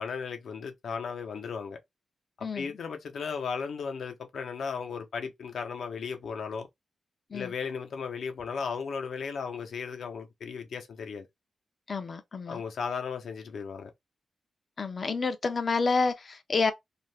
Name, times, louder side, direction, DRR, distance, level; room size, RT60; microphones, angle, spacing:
voice 1, 0.0-1.8 2.4-6.7 7.3-11.3 12.5-13.9, left 6 dB, 70° left, 0.7 m, -35 dB
voice 2, 2.4-2.7 7.3-7.5 11.9-12.6 14.8-16.7, left 4 dB, 35° left, 0.4 m, -29 dB
2.7 x 2.5 x 3.3 m
wide cardioid pair, 165°, 0 cm